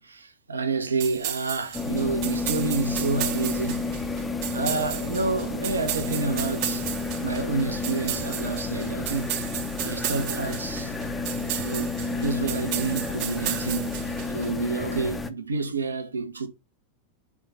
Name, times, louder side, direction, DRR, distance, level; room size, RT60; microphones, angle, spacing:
voice 1, 0.0-3.9 4.5-6.9 7.2-9.3 9.8-11.0 11.6-16.5, right 4 dB, 75° right, 0.9 m, -29 dB
sound 1, 1.0-14.5, right 11 dB, 45° right, 0.8 m, -34 dB
sound 2, 1.7-15.3, left 3 dB, 10° left, 0.7 m, -31 dB
4.9 x 3.9 x 5.4 m
figure-of-eight pair, 90°, 0 cm